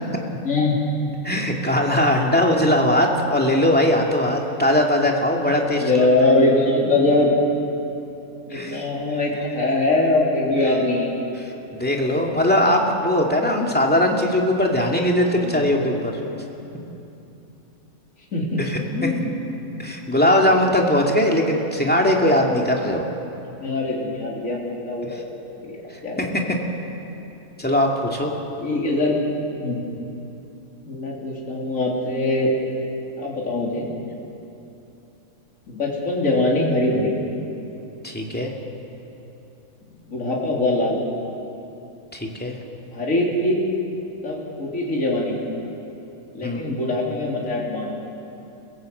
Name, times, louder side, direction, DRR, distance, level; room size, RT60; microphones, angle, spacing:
voice 1, 0.4-0.8 5.8-7.3 8.5-11.1 15.4-15.7 18.3-18.7 18.9-19.4 23.5-25.2 25.6-26.2 28.6-29.2 29.6-29.8 30.9-32.5 33.2-33.9 35.7-37.1 40.1-41.0 42.9-43.6 44.2-45.3 46.3-47.9, left 2 dB, 60° left, -3 dB, 3.6 m, -22 dB
voice 2, 1.2-6.0 8.5-8.8 11.4-16.1 18.6-19.1 19.8-23.1 25.1-25.2 26.2-26.6 27.6-28.3 38.0-38.5 42.1-42.6 46.4-46.8, left 1 dB, 5° left, 0 dB, 2.3 m, -20 dB
29.5 x 16.0 x 7.9 m, 2.9 s
omnidirectional pair, 1.5 m